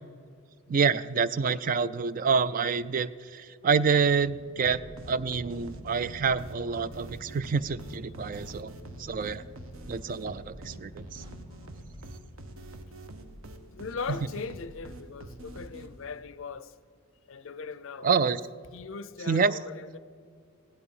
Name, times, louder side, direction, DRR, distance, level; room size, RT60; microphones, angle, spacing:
voice 1, 0.7-4.8 5.1-8.7 9.0-9.4 9.9-11.2 18.0-18.4 19.3-19.6, right 5 dB, 40° right, 0.3 m, -27 dB
sound 1, 4.2-12.1, equal, 20° right, 1.4 m, -47 dB
sound 2, 4.6-16.2, right 1 dB, 70° right, 1.1 m, -46 dB
voice 2, 13.7-16.7 17.3-18.4 18.7-20.0, left 5 dB, 60° left, 0.5 m, -39 dB
16.5 x 11.0 x 5.5 m
head